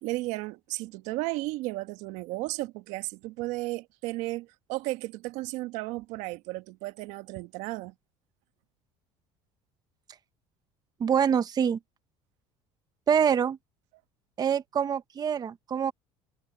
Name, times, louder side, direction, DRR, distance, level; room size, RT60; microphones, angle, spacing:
voice 1, 0.0-7.9, right 20 dB, 75° right, 1.3 m, -34 dB
voice 2, 11.0-11.8 13.1-13.6 14.4-15.9, right 8 dB, 30° right, 0.9 m, -25 dB
supercardioid pair, 105°, 12 cm